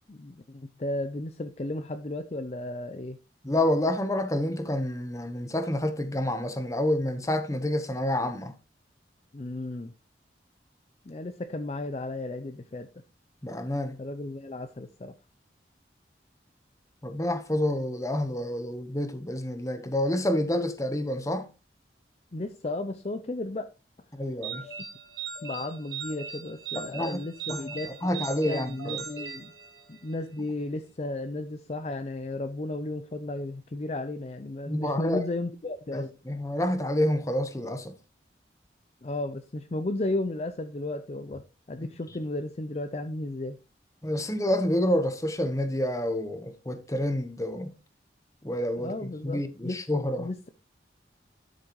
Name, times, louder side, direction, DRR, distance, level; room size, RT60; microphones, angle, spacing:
voice 1, 0.1-3.2 9.3-9.9 11.0-12.9 14.0-15.1 22.3-23.7 24.6-24.9 25.4-29.5 29.9-36.1 39.0-43.6 48.8-49.8 50.2-50.5, left 2 dB, 35° left, 0.5 m, -34 dB
voice 2, 3.4-8.5 13.4-14.0 17.0-21.5 24.1-24.6 26.7-27.2 27.5-27.6 28.0-29.0 34.7-35.2 35.9-38.0 44.0-47.7 48.4-50.3, left 1 dB, 15° left, 1.0 m, -28 dB
sound 1, 24.4-30.2, right 6 dB, 70° right, 2.4 m, -39 dB
11.5 x 6.5 x 3.1 m
head